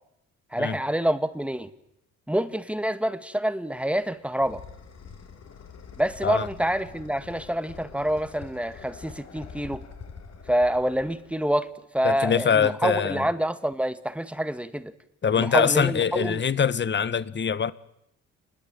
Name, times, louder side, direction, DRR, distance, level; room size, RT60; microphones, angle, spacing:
voice 1, 0.5-1.7 2.3-4.6 6.0-9.8 10.5-14.9 15.3-16.4, equal, 5° right, 2.0 m, -27 dB
sound 1, 4.0-11.7, left 6 dB, 55° left, 5.5 m, -45 dB
voice 2, 12.0-13.2 15.2-17.7, left 7 dB, 35° left, 1.3 m, -23 dB
29.5 x 21.0 x 9.1 m
cardioid pair, 90°, 30 cm